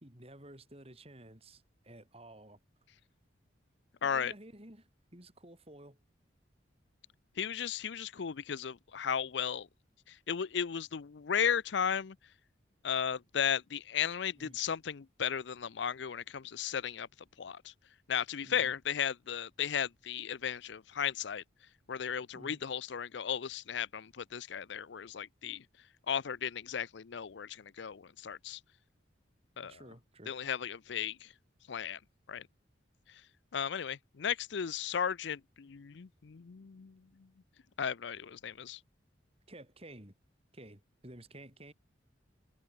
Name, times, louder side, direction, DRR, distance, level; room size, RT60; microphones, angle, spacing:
voice 1, 0.0-2.6 4.0-6.0 14.4-14.6 18.4-18.7 22.3-22.6 29.6-30.3 39.5-40.2 40.5-41.7, right 1 dB, 30° right, 4.2 m, -52 dB
voice 2, 4.0-4.3 7.4-9.7 10.1-12.2 12.8-17.1 17.4-17.7 18.1-21.4 21.9-25.6 26.1-28.6 29.6-29.8 30.3-31.3 31.7-32.0 32.3-32.4 33.5-37.0 37.8-38.8, left 8 dB, 70° left, 0.5 m, -35 dB
head